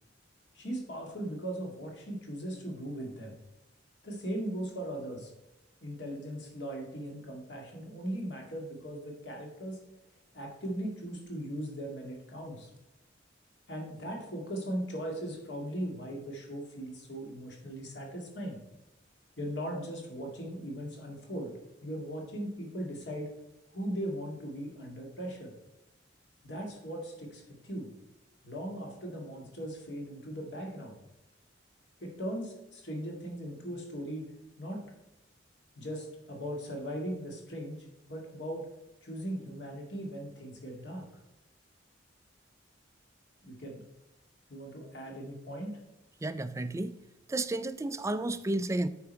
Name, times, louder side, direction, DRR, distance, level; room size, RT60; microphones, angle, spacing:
voice 1, 0.5-3.4 4.0-5.3 5.8-9.8 10.3-12.7 13.7-18.6 19.4-21.5 21.8-23.3 23.7-25.5 26.4-27.9 28.4-31.0 32.0-34.2 34.6-34.8 35.8-37.8 38.1-38.7 39.0-41.1 43.4-43.8 44.5-45.8, right 1 dB, 65° left, 2.0 m, -38 dB
voice 2, 46.2-46.9 47.3-48.9, right 2 dB, 15° right, 0.3 m, -32 dB
8.5 x 4.8 x 4.5 m
head